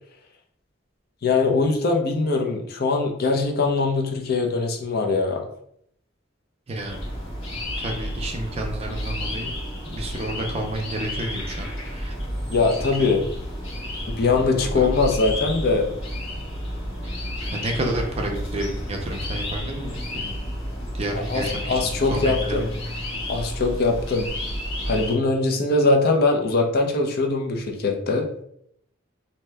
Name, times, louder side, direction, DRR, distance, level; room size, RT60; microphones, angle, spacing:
voice 1, 1.2-5.4 12.5-13.2 14.1-15.9 21.1-22.7 23.3-24.3 24.8-28.4, left 3 dB, 50° left, 2 dB, 0.5 m, -22 dB
voice 2, 6.7-7.0 7.8-9.5 9.8-12.2 12.8-13.1 14.5-14.9 17.0-20.3 20.9-22.6, right 1 dB, 30° right, 2 dB, 0.5 m, -31 dB
sound 1, 6.9-25.1, left 1 dB, 85° left, 1.2 m, -31 dB
2.7 x 2.2 x 3.3 m, 0.69 s
head